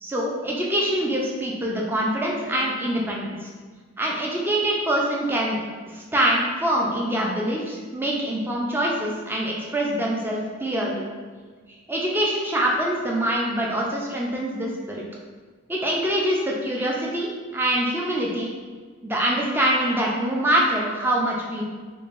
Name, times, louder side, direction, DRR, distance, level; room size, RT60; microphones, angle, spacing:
voice 1, 0.0-3.5 4.0-5.6 5.9-11.0 11.9-15.0 15.7-18.5 19.0-21.6, right 1 dB, 10° right, -3 dB, 0.4 m, -24 dB
3.5 x 3.2 x 2.5 m, 1.5 s
head